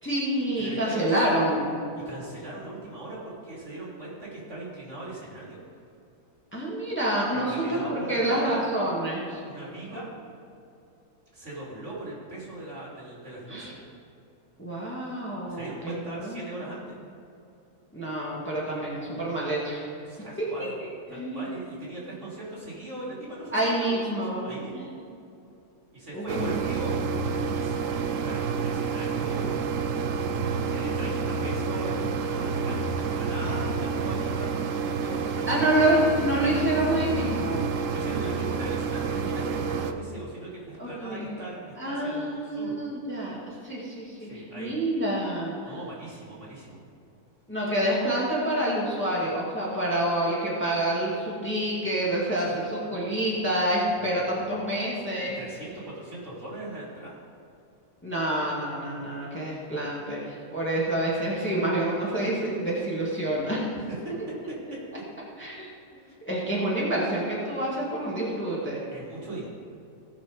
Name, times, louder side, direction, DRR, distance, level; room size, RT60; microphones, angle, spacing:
voice 1, 0.0-1.8 6.5-9.4 13.5-13.7 14.6-15.9 16.2-16.7 17.9-19.9 20.4-20.5 20.8-21.5 23.5-24.9 26.1-26.6 35.5-37.6 40.8-41.4 41.8-43.4 43.6-45.5 47.5-55.4 58.0-63.7 65.4-65.7 66.3-68.8, right 1 dB, 5° left, -6 dB, 2.1 m, -27 dB
voice 2, 0.6-1.4 1.9-5.6 7.3-8.6 9.4-10.0 11.3-13.8 15.4-16.9 20.0-20.8 21.1-24.9 25.9-27.0 27.5-30.4 30.7-36.0 37.7-42.7 44.2-44.7 45.6-46.8 52.4-52.9 54.0-54.5 55.3-57.2 63.7-63.8 65.9-66.2 68.9-69.5, right 2 dB, 45° right, -6 dB, 3.4 m, -40 dB
sound 1, 26.3-39.9, right 5 dB, 65° right, 1.0 m, -29 dB
17.0 x 6.1 x 5.2 m, 2.6 s
omnidirectional pair, 1.7 m